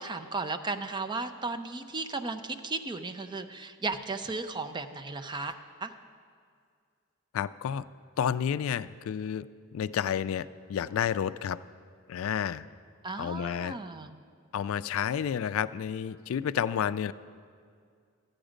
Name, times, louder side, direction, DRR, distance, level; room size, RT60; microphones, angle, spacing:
voice 1, 0.0-5.9 13.0-14.1, right 3 dB, 20° right, 8 dB, 0.5 m, -35 dB
voice 2, 7.3-7.9 8.2-9.5 9.7-11.6 12.1-12.6 13.2-13.8 14.5-17.1, left 8 dB, 70° left, 16 dB, 0.3 m, -30 dB
13.5 x 8.8 x 5.1 m, 2.2 s
head